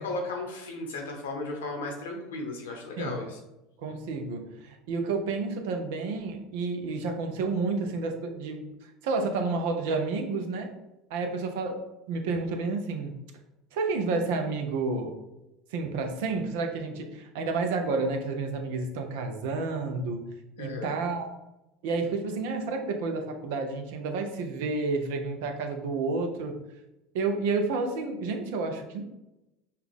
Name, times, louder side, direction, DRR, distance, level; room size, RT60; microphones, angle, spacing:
voice 1, 0.0-3.4 20.6-21.0, left 2 dB, 85° left, 2 dB, 1.0 m, -35 dB
voice 2, 3.8-8.7 9.0-10.7 11.1-11.8 12.1-13.2 13.7-15.2 15.7-20.3 20.6-21.3 21.8-26.6 27.1-29.0, right 3 dB, 75° right, 5 dB, 0.7 m, -30 dB
5.6 x 2.5 x 3.5 m, 0.95 s
hypercardioid pair, 85°, 0 cm